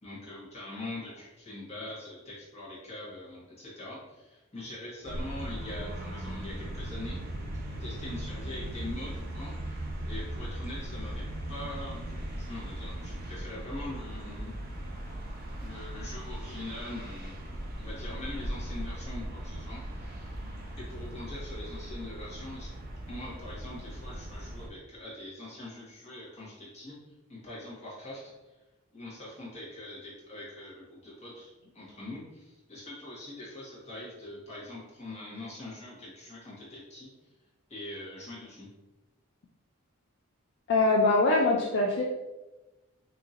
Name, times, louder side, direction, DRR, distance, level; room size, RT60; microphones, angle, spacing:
voice 1, 0.0-7.2 7.8-9.8 10.0-14.5 15.6-17.4 17.8-20.3 20.8-22.7 23.1-26.9 27.3-28.2 28.9-37.1 37.7-38.7, left 1 dB, 30° left, -6 dB, 1.3 m, -43 dB
sound 1, 5.0-24.7, right 1 dB, 45° right, 0.7 m, -38 dB
voice 2, 40.7-42.0, left 2 dB, 55° left, -2 dB, 0.4 m, -23 dB
4.2 x 2.8 x 2.5 m, 1.1 s
head